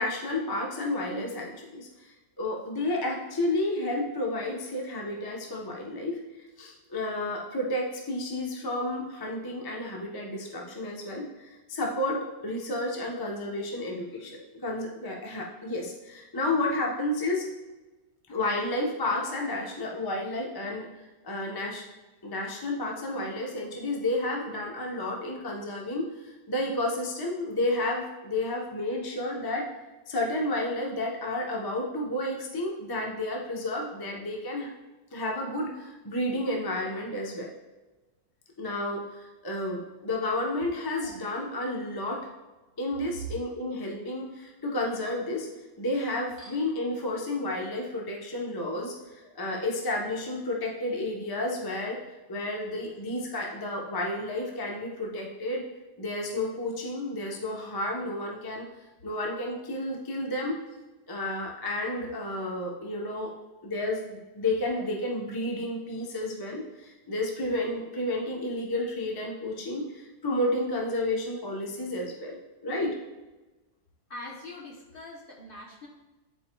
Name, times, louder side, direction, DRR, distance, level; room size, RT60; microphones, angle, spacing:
voice 1, 0.0-6.2 6.6-17.5 18.3-20.9 21.2-21.8 22.2-29.7 30.1-34.7 35.1-37.5 38.6-42.2 42.8-45.5 45.8-52.0 52.3-55.6 56.0-58.7 59.0-60.6 61.1-63.3 63.6-72.4 72.6-72.9, left 1 dB, 20° left, -1 dB, 0.6 m, -31 dB
voice 2, 40.7-41.1 46.4-46.6 49.2-49.4 64.7-64.8 74.1-75.9, left 2 dB, 40° left, -2 dB, 0.9 m, -44 dB
11.0 x 4.5 x 2.3 m, 1.1 s
omnidirectional pair, 1.7 m